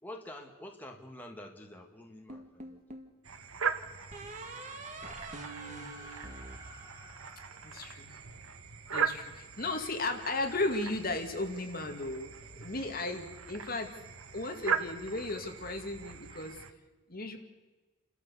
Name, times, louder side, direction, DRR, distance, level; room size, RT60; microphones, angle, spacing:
voice 1, 0.0-2.8, left 1 dB, 10° left, 1 dB, 1.7 m, -47 dB
sound 1, 2.3-3.1 4.1-7.4, right 2 dB, 35° right, 2.0 m, -45 dB
sound 2, 3.2-16.7, right 6 dB, 85° right, 1.3 m, -39 dB
sound 3, 5.1-8.8, equal, 15° right, 3.2 m, -55 dB
voice 2, 7.6-8.1 8.9-12.3 12.6-13.9 14.3-16.6 17.1-17.4, left 2 dB, 45° left, 4 dB, 2.1 m, -35 dB
30.0 x 13.0 x 6.9 m, 1.2 s
head